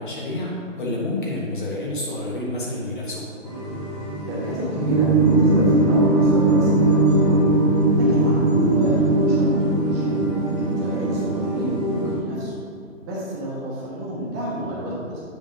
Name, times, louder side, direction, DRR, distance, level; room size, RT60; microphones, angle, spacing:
voice 1, 0.0-3.2, left 1 dB, 40° left, -4 dB, 1.4 m, -28 dB
sound 1, 3.4-12.1, right 2 dB, 10° left, 0.9 m, -20 dB
voice 2, 4.3-7.4 7.9-10.2 10.6-12.6 13.0-15.2, equal, 15° right, -7 dB, 1.2 m, -30 dB
8.4 x 3.5 x 5.3 m, 2.1 s
figure-of-eight pair, 150°, 39 cm